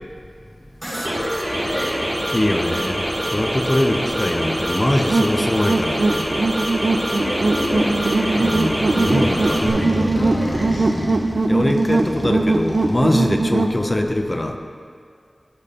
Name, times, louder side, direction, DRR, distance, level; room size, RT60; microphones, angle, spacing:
sound 1, 0.8-9.7, equal, 20° right, 1.2 m, -25 dB
voice 1, 0.9-2.7 7.2-8.6 9.1-9.3 9.6-11.1 13.8-14.1, equal, 90° left, -11 dB, 1.7 m, -29 dB
voice 2, 2.3-3.0 3.3-6.3 8.4-10.2 11.5-14.6, left 1 dB, 30° left, 5 dB, 0.7 m, -22 dB
sound 2, 5.1-13.8, right 3 dB, 70° right, 0.4 m, -21 dB
Motorcycle, 7.2-13.8, equal, 10° left, 1.5 m, -32 dB
14.0 x 5.1 x 2.9 m, 2.2 s
wide cardioid pair, 45°, 0 cm